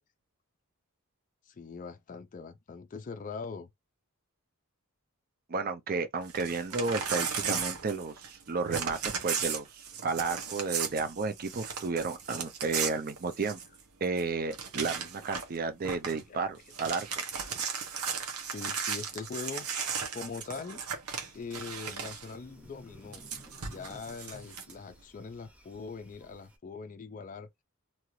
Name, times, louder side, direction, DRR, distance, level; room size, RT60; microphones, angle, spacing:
voice 1, 1.5-3.7 14.1-14.2 14.9-15.1 16.3-16.4 18.3-19.7 20.1-20.8 21.3-23.3 23.6-27.5, left 5 dB, 35° left, 0.4 m, -42 dB
voice 2, 5.5-13.6 14.0-17.2, right 4 dB, 45° right, 0.5 m, -32 dB
Crumpling crinkling / Tearing, 6.2-8.4 8.7-13.8 14.2-14.3 14.5-15.6 15.8-16.2 16.6-22.3 23.1-24.7, right 6 dB, 85° right, 0.9 m, -36 dB
sound 1, 21.2-26.6, left 1 dB, 5° right, 0.7 m, -55 dB
2.9 x 2.4 x 3.1 m
head